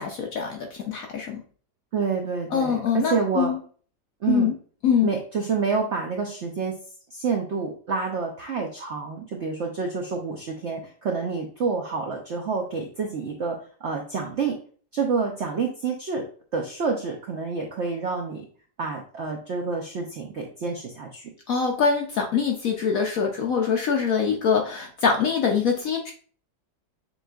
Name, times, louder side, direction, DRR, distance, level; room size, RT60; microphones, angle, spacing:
voice 1, 0.0-1.4 2.5-3.6 4.3-4.5 4.8-5.1 21.5-26.1, left 6 dB, 70° left, 2 dB, 0.8 m, -24 dB
voice 2, 1.9-3.5 4.2-4.5 5.0-6.7 7.1-14.6 14.9-16.2 16.5-18.5 18.8-21.2, right 5 dB, 70° right, 1 dB, 0.6 m, -28 dB
7.1 x 3.1 x 2.3 m, 0.43 s
omnidirectional pair, 2.0 m